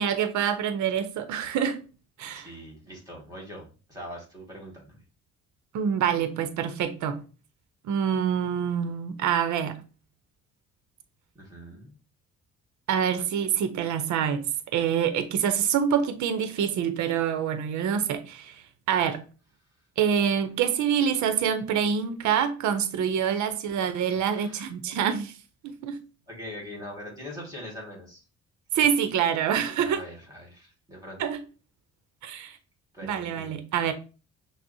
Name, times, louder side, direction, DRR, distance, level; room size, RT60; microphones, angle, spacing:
voice 1, 0.0-1.8 2.2-2.5 5.7-7.2 7.8-9.8 12.9-14.5 14.7-19.2 20.0-25.3 25.6-26.0 28.7-30.0 31.2-31.4 32.2-32.6 33.0-33.9, right 8 dB, 70° right, 0.6 m, -26 dB
voice 2, 2.3-5.0 11.4-12.0 18.9-19.1 24.1-24.7 26.3-28.2 28.7-28.9 29.8-31.2 32.9-33.9, equal, 10° right, 1.9 m, -42 dB
6.0 x 2.1 x 2.6 m
cardioid pair, 90°, 30 cm